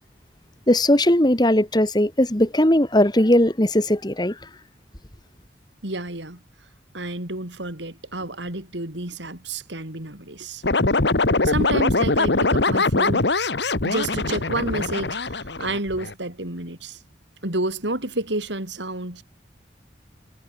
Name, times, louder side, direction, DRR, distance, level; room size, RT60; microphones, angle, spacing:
voice 1, 0.7-4.3, left 1 dB, 25° left, 1.6 m, -18 dB
voice 2, 5.8-6.4 6.9-10.6 11.4-13.3 13.8-17.0 17.4-19.2, right 2 dB, 80° right, 4.7 m, -30 dB
sound 1, 10.6-16.1, left 3 dB, 70° left, 1.7 m, -22 dB
head